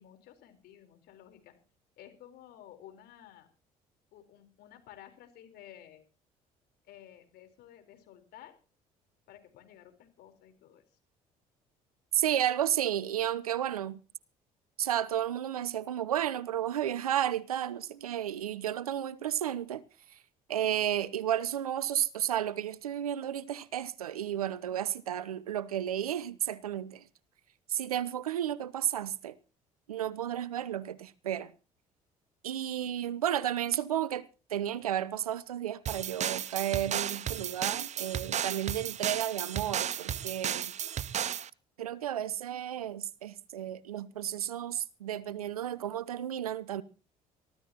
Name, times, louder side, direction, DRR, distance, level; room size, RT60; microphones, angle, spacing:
voice 1, 0.0-1.6 2.0-3.5 4.1-6.1 6.8-8.6 9.3-11.0, left 11 dB, 60° left, 4.1 m, -53 dB
voice 2, 12.1-14.0 14.8-19.8 20.5-27.0 27.7-29.4 29.9-31.5 32.4-40.7 41.8-46.8, right 11 dB, 85° right, 0.7 m, -32 dB
sound 1, 35.9-41.5, right 9 dB, 40° right, 0.7 m, -34 dB
23.5 x 15.0 x 2.9 m
figure-of-eight pair, 55°, 18 cm